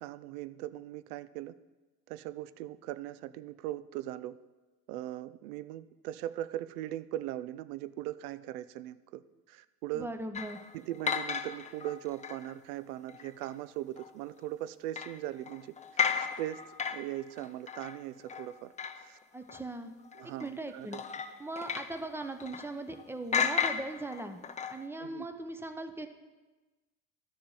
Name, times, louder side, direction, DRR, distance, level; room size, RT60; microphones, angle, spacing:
voice 1, 0.0-1.5 2.1-4.4 4.9-9.2 9.5-10.1 10.7-16.6 16.9-19.2 20.1-21.0 25.0-25.3, right 14 dB, 75° right, 16 dB, 0.6 m, -40 dB
voice 2, 9.9-10.6 19.3-19.9 20.2-21.0 21.4-24.4 24.7-26.1, right 2 dB, 5° right, 7 dB, 0.9 m, -39 dB
sound 1, 10.3-12.5 13.1-13.6 14.0-14.1 15.0-19.2 19.5-19.6 20.0-20.5 20.9-23.0 23.3-24.9, left 7 dB, 15° left, 0.5 m, -35 dB
13.0 x 6.8 x 4.1 m, 1.2 s
hypercardioid pair, 70°, 45 cm